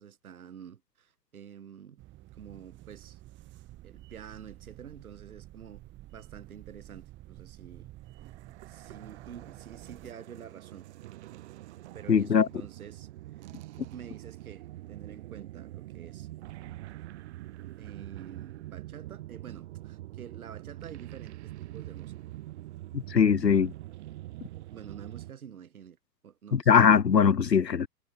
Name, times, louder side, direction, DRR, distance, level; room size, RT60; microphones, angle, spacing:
voice 1, 0.0-2.1 2.3-3.2 3.8-5.8 6.1-7.9 8.7-10.9 11.9-13.1 13.4-13.5 13.9-16.3 17.8-22.1 24.7-26.0 26.2-26.7, right 8 dB, 60° right, 3.6 m, -48 dB
sound 1, 2.0-10.1, right 15 dB, 25° right, 3.2 m, -50 dB
sound 2, 8.1-25.3, right 16 dB, 45° right, 5.3 m, -44 dB
voice 2, 12.1-12.5 22.9-23.7 26.5-27.9, left 7 dB, 85° left, 0.8 m, -21 dB
figure-of-eight pair, 115°, 48 cm